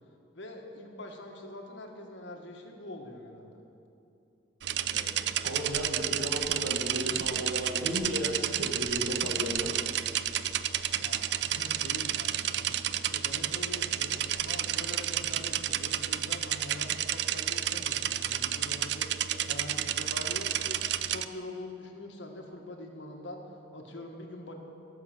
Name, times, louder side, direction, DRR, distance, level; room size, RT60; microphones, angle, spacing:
voice 1, 0.3-3.6 11.0-12.8 13.1-19.1 19.5-24.5, left 1 dB, 70° left, 2 dB, 1.6 m, -44 dB
sound 1, 4.6-21.3, right 11 dB, 60° right, 0.4 m, -31 dB
voice 2, 5.4-9.7, equal, 75° right, 1 dB, 1.6 m, -34 dB
16.5 x 6.2 x 7.8 m, 2.7 s
head